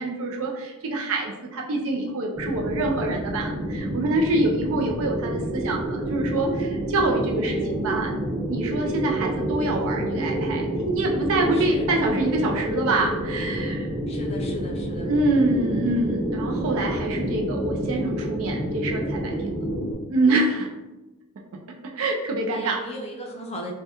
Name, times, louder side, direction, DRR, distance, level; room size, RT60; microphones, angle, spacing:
voice 1, 0.0-8.1 8.5-13.9 15.1-19.6 20.1-20.7 22.0-22.8, right 2 dB, 65° right, 1 dB, 0.4 m, -25 dB
sound 1, 2.3-19.9, right 1 dB, 30° right, 1.3 m, -28 dB
voice 2, 11.5-11.9 14.1-15.1 22.5-23.7, equal, 30° left, -1 dB, 0.4 m, -36 dB
2.8 x 2.1 x 3.4 m, 1.1 s
head